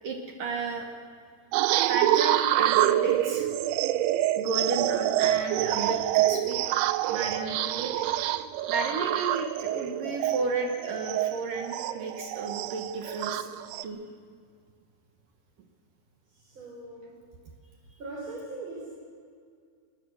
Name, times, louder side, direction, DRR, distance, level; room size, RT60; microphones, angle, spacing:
voice 1, 0.0-0.9 1.7-3.5 4.3-7.9 8.7-13.5 13.8-14.0, right 3 dB, 65° right, 3 dB, 2.3 m, -33 dB
sound 1, 1.5-13.8, right 13 dB, 85° right, 2.3 m, -26 dB
voice 2, 16.2-17.2 18.0-19.0, right 2 dB, 30° right, -3 dB, 4.4 m, -40 dB
21.5 x 20.5 x 6.4 m, 2.2 s
omnidirectional pair, 5.3 m